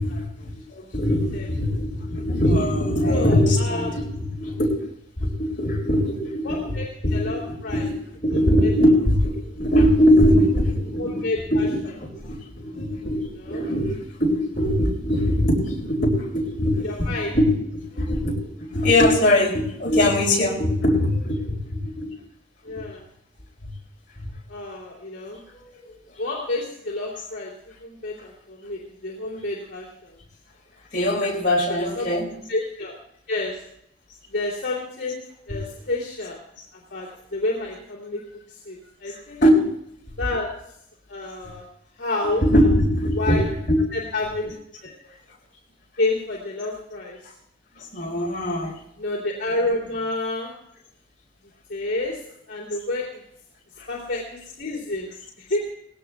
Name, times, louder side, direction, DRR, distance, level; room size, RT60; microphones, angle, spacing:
voice 1, 0.0-0.5 0.9-4.9 5.2-6.8 7.0-22.1 22.7-22.8 24.2-24.3 25.5-25.9 30.9-32.3 35.5-35.6 39.1-39.6 42.4-43.8 47.8-48.8 53.8-53.9, left 1 dB, 45° left, -3 dB, 4.5 m, -22 dB
voice 2, 1.3-1.7 3.1-3.9 6.4-7.9 8.3-8.7 11.0-11.7 13.4-13.6 16.8-17.3 22.6-23.0 24.5-25.4 26.2-27.5 27.8-29.9 31.7-32.1 32.5-32.9 33.3-33.6 34.3-35.2 35.5-36.4 36.9-38.2 38.5-39.4 40.2-40.5 41.1-41.6 42.0-42.4 43.1-43.4 43.9-44.5 44.8-44.9 46.0-47.2 49.0-50.6 51.7-52.2 52.5-53.1 53.9-55.6, left 2 dB, 65° left, -6 dB, 3.0 m, -29 dB
20.0 x 17.0 x 2.4 m, 0.75 s
head